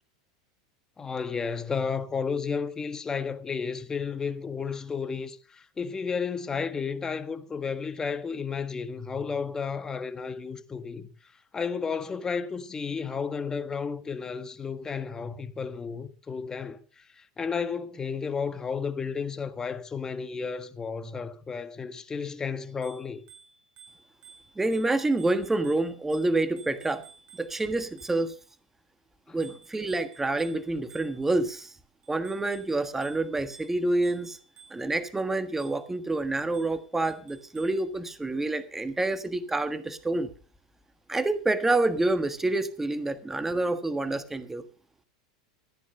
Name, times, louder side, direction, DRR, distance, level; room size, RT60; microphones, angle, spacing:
voice 1, 1.0-11.1 11.5-23.2 29.3-29.4, left 5 dB, 20° left, 1.6 m, -32 dB
Bicycle bell, 22.7-28.5 29.4-31.5 32.0-35.0 35.6-36.0 36.5-37.9, right 6 dB, 45° right, 4.9 m, -54 dB
voice 2, 24.6-27.0 27.4-28.3 29.3-31.7 32.1-34.4 34.7-40.3 41.1-44.6, right 2 dB, 10° right, 1.4 m, -28 dB
15.0 x 9.4 x 5.5 m
hypercardioid pair, 105°, 3 cm